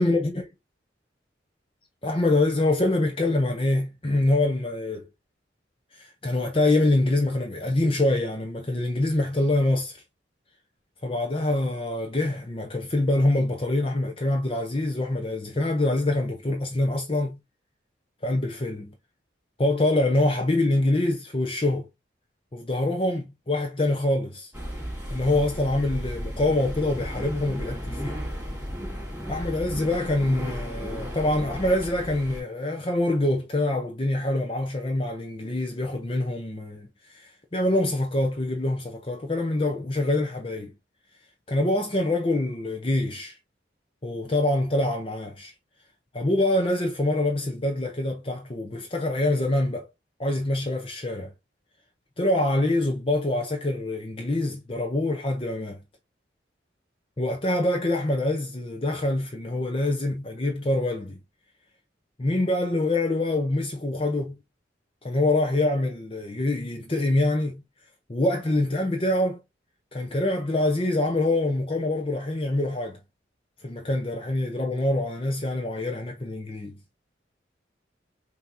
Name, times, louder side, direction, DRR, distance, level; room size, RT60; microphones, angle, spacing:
voice 1, 0.0-0.4 2.0-5.1 5.9-10.0 11.0-17.4 18.2-18.9 19.6-21.9 22.5-24.5 25.1-28.2 29.3-40.7 41.5-43.4 44.0-45.5 46.1-49.9 50.2-51.3 52.2-55.8 57.2-61.2 62.2-64.4 65.0-67.6 68.1-69.4 69.9-73.0 73.6-76.8, left 1 dB, 30° left, 0.7 m, -25 dB
sound 1, 24.5-32.4, equal, 10° right, 3.2 m, -34 dB
5.7 x 2.9 x 2.7 m
head